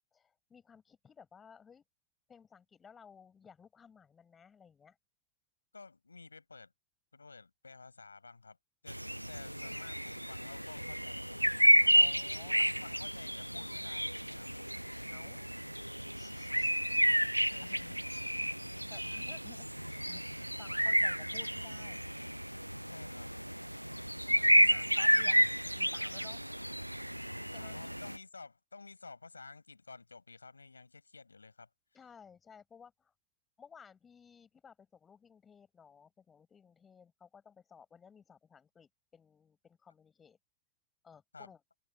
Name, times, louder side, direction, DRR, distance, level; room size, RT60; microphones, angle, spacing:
voice 1, 0.0-1.8 2.3-5.0 11.9-13.0 15.1-15.6 16.1-16.8 18.9-22.0 24.6-25.5 25.8-26.5 27.5-27.8 31.9-33.1 33.6-40.4 41.0-41.6, left 6 dB, 20° left, 6.9 m, -58 dB
voice 2, 5.7-6.7 7.1-8.6 8.8-9.0 9.3-11.4 12.5-14.6 17.5-18.0 22.9-23.3 27.4-31.7 41.3-41.5, left 4 dB, 80° left, 6.2 m, -52 dB
sound 1, 8.9-28.2, equal, 90° right, 0.4 m, -31 dB
open air
figure-of-eight pair, 90°, 0 cm